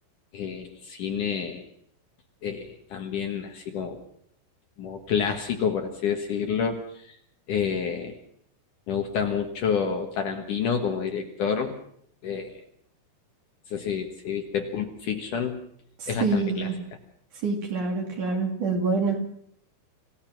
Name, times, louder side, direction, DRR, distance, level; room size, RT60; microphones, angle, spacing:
voice 1, 0.3-1.7 2.4-4.0 4.8-7.2 7.5-8.2 8.9-11.7 12.2-12.6 13.7-15.6 16.1-16.7, left 7 dB, 60° left, 4 dB, 2.6 m, -29 dB
voice 2, 16.0-16.7 17.4-19.2, right 4 dB, 50° right, 2 dB, 3.7 m, -26 dB
26.5 x 16.5 x 5.9 m, 0.66 s
omnidirectional pair, 4.9 m